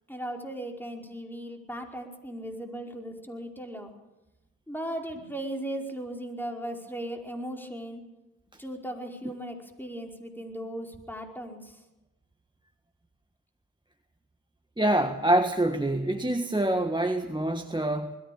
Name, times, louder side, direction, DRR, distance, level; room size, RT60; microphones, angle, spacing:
voice 1, 0.1-3.9 4.7-8.0 8.6-11.8, right 1 dB, 5° left, 2 dB, 5.1 m, -37 dB
voice 2, 14.8-18.2, right 1 dB, 10° right, 6 dB, 1.6 m, -26 dB
21.0 x 15.5 x 8.7 m, 1.0 s
supercardioid pair, 45°, 41 cm